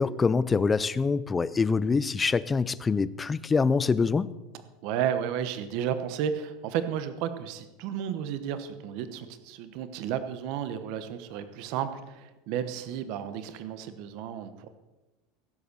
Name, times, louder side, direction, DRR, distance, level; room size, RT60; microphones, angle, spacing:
voice 1, 0.0-4.3, left 4 dB, 10° left, 17 dB, 0.4 m, -25 dB
voice 2, 4.8-14.7, right 9 dB, 45° right, 11 dB, 1.1 m, -32 dB
16.0 x 7.9 x 6.8 m, 1.1 s
supercardioid pair, 175°, 0 cm